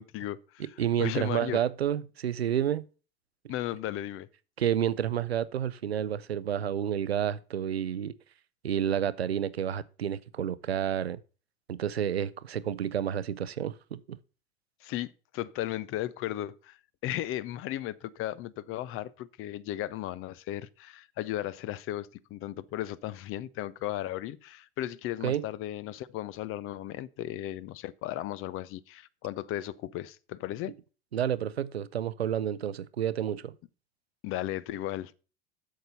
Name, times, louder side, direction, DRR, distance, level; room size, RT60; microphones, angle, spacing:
voice 1, 0.0-0.7 1.0-1.6 3.5-4.3 14.8-30.8 34.2-35.1, left 13 dB, 45° left, 0.7 m, -35 dB
voice 2, 0.6-2.8 4.6-8.1 8.6-11.2 11.7-14.2 25.2-25.4 31.1-33.5, right 9 dB, 90° right, 0.5 m, -30 dB
8.0 x 6.6 x 5.6 m
figure-of-eight pair, 75°, 30 cm